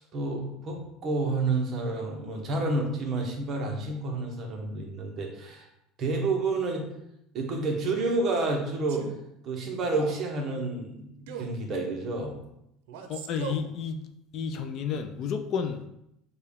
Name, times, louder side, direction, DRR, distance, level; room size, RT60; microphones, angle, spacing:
voice 1, 0.0-5.7 6.0-6.9 7.3-9.0 9.4-12.3, right 3 dB, 30° right, 1 dB, 0.8 m, -29 dB
Male speech man speaking, 7.8-8.2 8.9-9.2 9.8-10.2 11.3-11.6 12.9-13.7, right 7 dB, 85° right, 0.5 m, -39 dB
voice 2, 13.1-14.0 14.3-15.9, left 6 dB, 35° left, 6 dB, 0.3 m, -31 dB
6.5 x 2.2 x 3.5 m, 0.80 s
cardioid pair, 175°, 0 cm